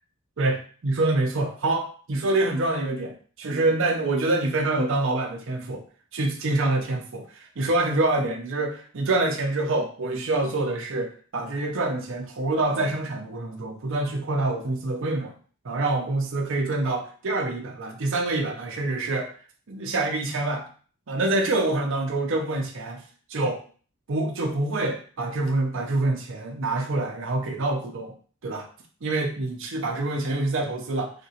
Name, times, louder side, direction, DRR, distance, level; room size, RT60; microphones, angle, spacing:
voice 1, 0.4-5.8 6.1-15.3 15.6-19.3 19.7-20.6 21.1-23.0 23.3-23.6 24.1-28.1 28.4-28.7 29.0-31.1, right 2 dB, 60° right, 3 dB, 0.6 m, -26 dB
3.5 x 2.9 x 2.8 m, 0.42 s
head